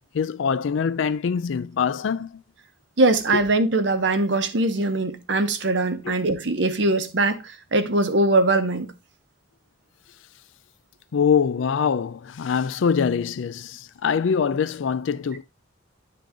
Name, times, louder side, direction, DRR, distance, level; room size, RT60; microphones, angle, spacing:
voice 1, 0.1-2.4 3.3-3.4 6.0-6.2 11.1-15.4, left 6 dB, 75° left, 0.4 m, -24 dB
voice 2, 3.0-8.9, right 2 dB, 65° right, 0.9 m, -21 dB
10.0 x 3.8 x 3.5 m
head